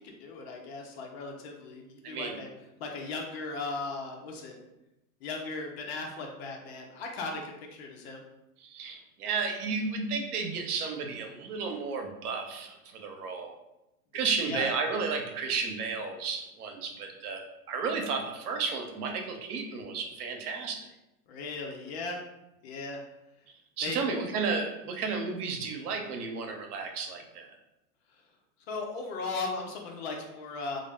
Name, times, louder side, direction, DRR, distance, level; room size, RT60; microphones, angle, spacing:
voice 1, 0.2-2.5 2.8-4.6 5.2-7.4 7.7-8.2 14.4-14.7 21.3-22.2 22.6-23.0 23.8-24.0 28.7-30.8, left 3 dB, 45° left, 2 dB, 0.5 m, -37 dB
voice 2, 2.0-2.4 8.6-13.5 14.1-17.4 17.7-20.9 23.5-27.5, right 5 dB, 80° right, 4 dB, 0.7 m, -33 dB
2.5 x 2.0 x 3.2 m, 0.93 s
hypercardioid pair, 140°, 44 cm